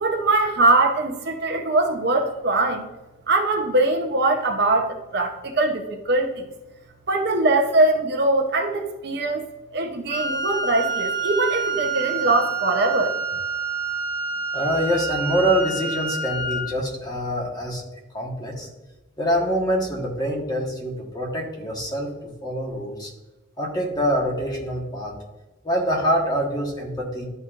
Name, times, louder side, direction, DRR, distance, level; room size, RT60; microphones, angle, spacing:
voice 1, 0.0-2.9 3.3-6.4 7.1-9.4 9.7-13.1, right 2 dB, 55° right, 2 dB, 0.8 m, -22 dB
Wind instrument woodwind instrument, 10.1-16.7, right 4 dB, 40° left, 1.7 m, -27 dB
voice 2, 14.5-17.8 18.1-18.7 19.2-22.1 22.4-23.1 23.6-25.2 25.6-27.3, equal, 20° left, -1 dB, 1.3 m, -25 dB
11.5 x 4.2 x 2.5 m, 1.1 s
head